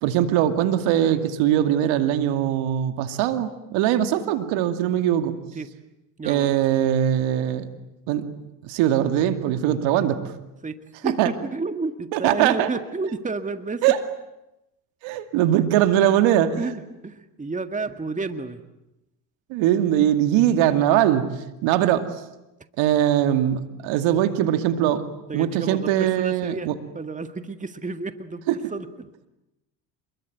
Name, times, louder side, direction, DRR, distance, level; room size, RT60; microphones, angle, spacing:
voice 1, 0.0-5.3 6.2-7.7 8.1-8.3 8.6-10.2 11.2-11.3 12.1-12.7 13.8-14.0 15.0-16.7 19.5-21.3 21.6-22.1 22.8-25.0 25.3-26.7 28.5-28.6, right 11 dB, 70° right, 8 dB, 2.6 m, -21 dB
voice 2, 6.2-6.6 10.6-10.8 11.0-13.8 16.5-18.6 25.3-29.1, right 3 dB, 15° right, 9 dB, 1.9 m, -31 dB
28.0 x 22.5 x 9.3 m, 0.92 s
hypercardioid pair, 80°, 49 cm